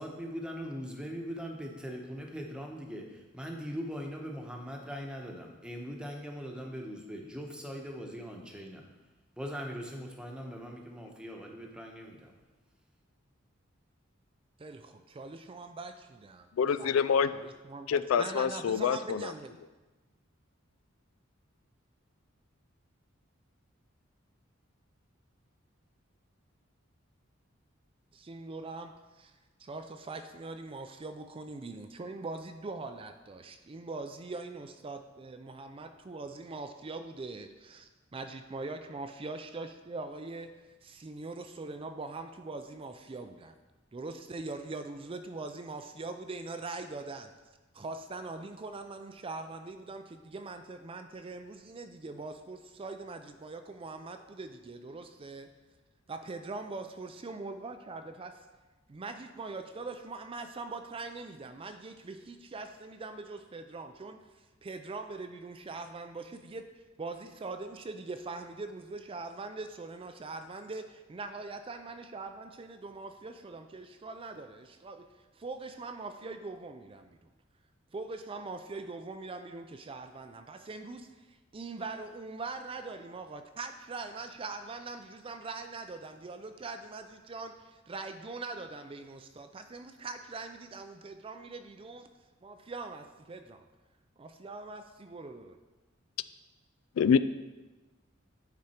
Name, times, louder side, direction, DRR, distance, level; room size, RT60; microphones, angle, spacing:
voice 1, 0.0-8.8 9.4-12.3, equal, 5° right, 0 dB, 1.0 m, -41 dB
voice 2, 14.6-16.5 16.8-16.9 17.3-19.5 28.1-29.3 29.6-40.5 40.8-43.5 43.9-47.3 47.7-55.5 56.1-58.4 58.9-66.7 67.0-75.1 75.4-77.3 77.9-92.1 92.4-93.6 94.2-95.6, right 3 dB, 25° right, 7 dB, 0.4 m, -42 dB
voice 3, 16.6-17.3 17.9-19.3 97.0-97.2, left 7 dB, 90° left, 14 dB, 0.3 m, -26 dB
9.5 x 5.1 x 4.4 m, 1.2 s
head